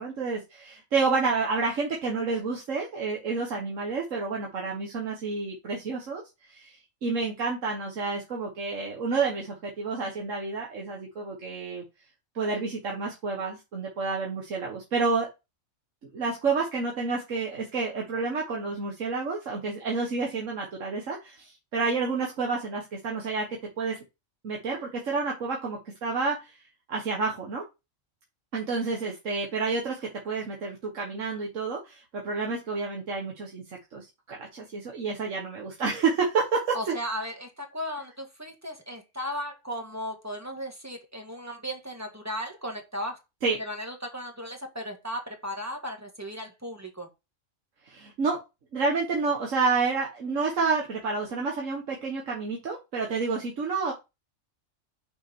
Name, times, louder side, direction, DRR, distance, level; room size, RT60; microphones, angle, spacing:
voice 1, 0.0-6.2 6.5-11.8 12.4-15.3 16.1-23.5 23.8-24.0 24.4-26.6 26.9-27.6 28.5-37.0 43.4-43.6 47.8-48.4 48.7-53.9, right 4 dB, 90° right, 1.7 m, -29 dB
voice 2, 36.7-43.2 43.6-47.1, equal, 15° right, 1.6 m, -36 dB
6.1 x 4.6 x 4.4 m
omnidirectional pair, 1.3 m